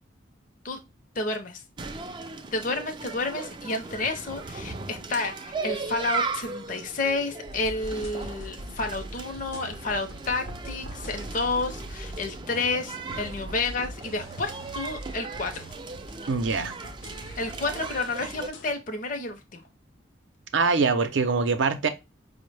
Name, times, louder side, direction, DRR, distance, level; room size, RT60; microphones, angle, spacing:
voice 1, 1.2-1.6 2.5-15.6 17.4-19.6, left 3 dB, 40° left, 0.5 m, -30 dB
sound 1, 1.8-18.5, right 4 dB, 25° right, 0.3 m, -37 dB
sound 2, 7.5-18.7, equal, 85° left, 0.7 m, -42 dB
voice 2, 16.3-16.8 20.5-21.9, right 4 dB, 75° right, 0.5 m, -23 dB
5.2 x 2.1 x 3.2 m
head